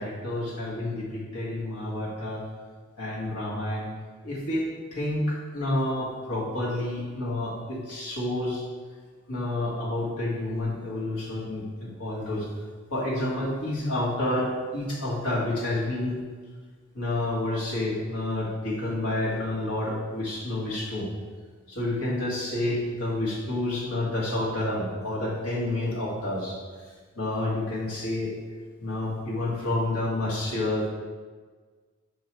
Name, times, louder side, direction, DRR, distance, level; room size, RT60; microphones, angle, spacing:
voice 1, 0.0-2.4 3.0-3.9 4.2-4.7 4.9-8.6 9.3-12.5 12.9-16.2 16.9-21.1 21.7-26.6 27.2-28.3 28.8-30.9, left 1 dB, 85° left, -6 dB, 2.0 m, -29 dB
5.2 x 4.8 x 4.7 m, 1.5 s
head